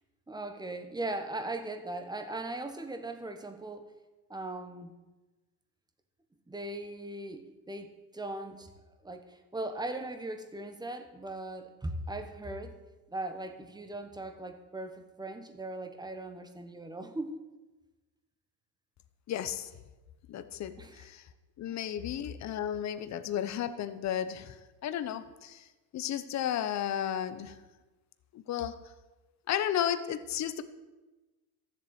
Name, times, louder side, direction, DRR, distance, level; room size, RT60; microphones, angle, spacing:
voice 1, 0.3-3.9 4.3-4.9 6.5-8.7 9.0-12.8 13.1-17.4 20.8-21.1 21.7-21.8, right 2 dB, 10° right, 7 dB, 1.2 m, -39 dB
voice 2, 19.3-19.7 20.3-20.7 21.0-21.2 21.6-24.5 24.8-25.6 25.9-27.5 28.3-28.8 29.5-30.6, left 10 dB, 35° left, 12 dB, 0.9 m, -33 dB
14.0 x 7.8 x 8.1 m, 1.1 s
cardioid pair, 130°, 48 cm